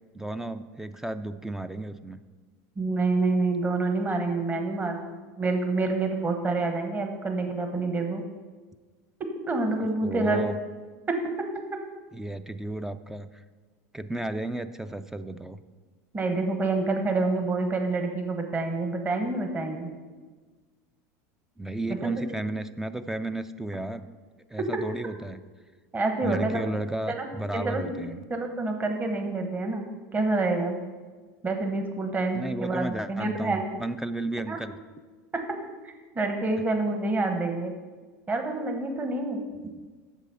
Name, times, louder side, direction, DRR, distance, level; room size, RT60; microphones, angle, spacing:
voice 1, 0.1-2.2 10.0-10.6 12.1-13.4 13.9-15.6 21.6-24.1 24.5-25.4 26.2-28.2 32.3-34.8 39.6-39.9, right 1 dB, 5° right, 11 dB, 0.4 m, -33 dB
voice 2, 2.8-8.2 9.5-10.4 11.1-11.2 16.1-19.9 22.0-22.1 25.9-26.6 27.1-27.3 27.5-27.9 28.3-30.8 31.4-33.8 34.5-34.6 35.3-35.4 35.8-37.7 38.3-39.4, right 3 dB, 20° right, 4 dB, 1.1 m, -27 dB
8.2 x 6.8 x 5.6 m, 1.4 s
supercardioid pair, 115°, 8 cm